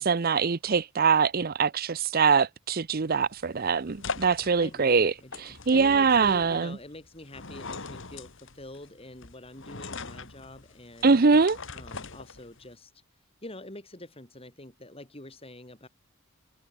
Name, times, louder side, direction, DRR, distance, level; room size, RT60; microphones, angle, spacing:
voice 1, 0.0-5.1 5.5-6.7 11.0-11.6, right 5 dB, 45° right, 0.6 m, -23 dB
sound 1, 2.9-12.7, left 4 dB, 60° left, 2.8 m, -42 dB
voice 2, 4.6-11.1 11.7-12.9 13.4-15.9, left 1 dB, 25° left, 6.1 m, -45 dB
head